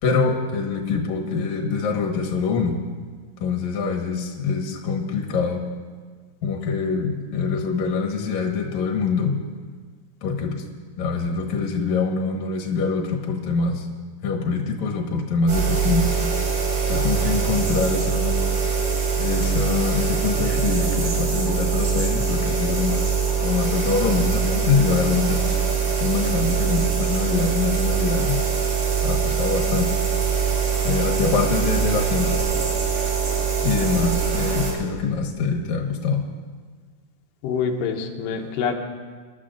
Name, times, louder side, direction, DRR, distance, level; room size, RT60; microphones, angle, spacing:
voice 1, 0.0-2.7 3.4-5.6 6.4-9.3 10.2-10.6 11.0-13.9 14.2-16.1 16.9-18.4 19.2-25.4 26.0-28.4 29.0-30.0 30.8-32.4 33.6-36.2, left 5 dB, 65° left, 1 dB, 2.4 m, -24 dB
sound 1, 15.5-34.7, right 6 dB, 70° right, 4.1 m, -23 dB
voice 2, 37.4-38.7, left 6 dB, 90° left, 3 dB, 2.5 m, -25 dB
24.0 x 11.5 x 2.5 m, 1.5 s
omnidirectional pair, 3.8 m